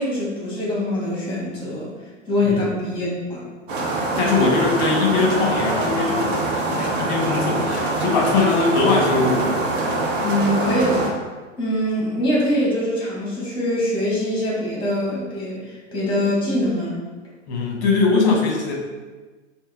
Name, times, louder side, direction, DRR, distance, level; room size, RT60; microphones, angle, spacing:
voice 1, 0.0-1.9 2.3-3.4 10.2-11.1 11.6-17.0, left 1 dB, 15° left, -5 dB, 1.3 m, -23 dB
sound 1, 3.7-11.1, right 2 dB, 40° right, 0.7 m, -24 dB
voice 2, 4.2-9.5 17.5-18.7, left 3 dB, 35° left, -1 dB, 0.8 m, -21 dB
4.2 x 2.1 x 3.5 m, 1.3 s
figure-of-eight pair, 100°, 38 cm